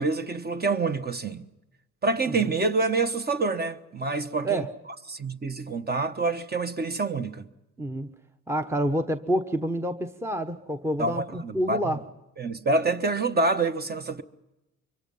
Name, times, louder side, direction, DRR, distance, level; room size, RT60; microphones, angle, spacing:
voice 1, 0.0-1.4 2.0-4.7 5.1-7.4 11.0-12.0 12.4-14.2, right 3 dB, 30° right, 1.2 m, -27 dB
voice 2, 7.8-8.1 8.5-12.0, right 1 dB, 10° right, 1.0 m, -28 dB
24.5 x 23.0 x 5.5 m
cardioid pair, 90°, 30 cm